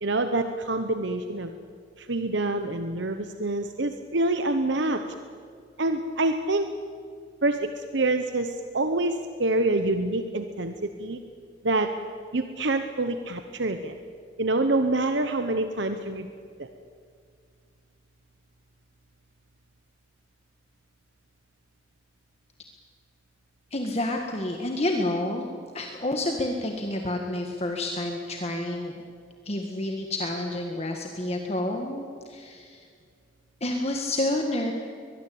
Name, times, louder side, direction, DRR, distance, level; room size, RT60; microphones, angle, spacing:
voice 1, 0.0-1.5 2.0-5.0 5.8-6.7 7.4-11.2 11.6-11.9 12.3-13.9 14.4-16.3 16.6-16.7, right 2 dB, 60° right, 7 dB, 1.0 m, -26 dB
voice 2, 23.7-25.5 25.7-28.9 29.4-32.8 33.6-34.7, left 1 dB, 30° left, 2 dB, 1.7 m, -29 dB
23.0 x 21.0 x 8.7 m, 2.2 s
head